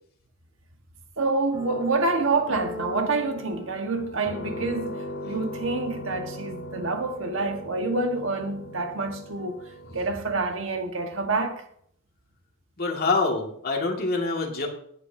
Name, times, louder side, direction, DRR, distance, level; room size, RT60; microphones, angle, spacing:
voice 1, 1.2-9.6 9.9-11.6, right 3 dB, 70° right, 1.6 m, -27 dB
sound 1, 1.5-10.6, equal, 80° left, 2.6 m, -38 dB
voice 2, 12.8-14.7, left 3 dB, 50° left, 2.3 m, -25 dB
17.5 x 8.4 x 2.8 m
head